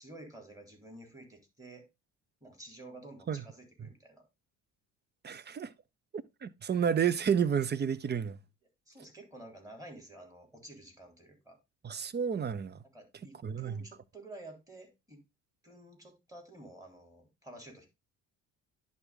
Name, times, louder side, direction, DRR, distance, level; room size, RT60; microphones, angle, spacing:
voice 1, 0.0-1.8 2.4-4.2 8.9-11.6 12.9-15.2 15.6-17.9, right 2 dB, 10° right, 3.6 m, -51 dB
voice 2, 5.2-5.7 6.1-8.4 11.8-12.8 13.4-13.8, right 7 dB, 25° right, 0.6 m, -31 dB
10.5 x 3.6 x 3.7 m
hypercardioid pair, 60°, 40 cm